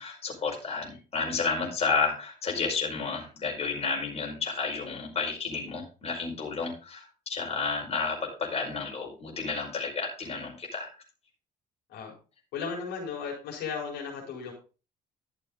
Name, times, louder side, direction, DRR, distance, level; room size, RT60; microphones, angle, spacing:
voice 1, 0.0-10.9, left 4 dB, 35° left, -1 dB, 5.1 m, -31 dB
voice 2, 12.5-14.5, left 5 dB, 85° left, -1 dB, 4.4 m, -35 dB
12.5 x 7.0 x 3.9 m, 0.34 s
cardioid pair, 110°, 17 cm